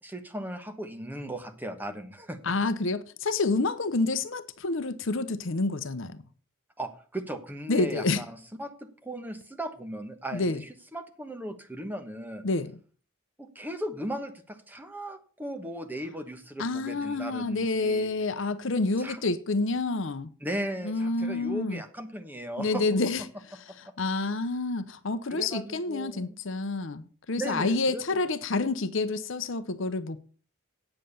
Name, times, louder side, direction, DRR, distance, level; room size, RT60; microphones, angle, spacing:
voice 1, 0.0-2.4 6.8-12.4 13.4-18.1 19.0-19.2 20.4-22.8 24.1-24.2 25.3-26.3 27.4-28.0, right 1 dB, 10° right, 1.2 m, -37 dB
voice 2, 2.4-6.2 7.7-8.2 10.3-10.6 12.4-12.7 16.6-20.3 20.8-21.8 22.6-23.2 23.5-30.2, left 3 dB, 60° left, 0.8 m, -28 dB
8.9 x 7.6 x 6.8 m
head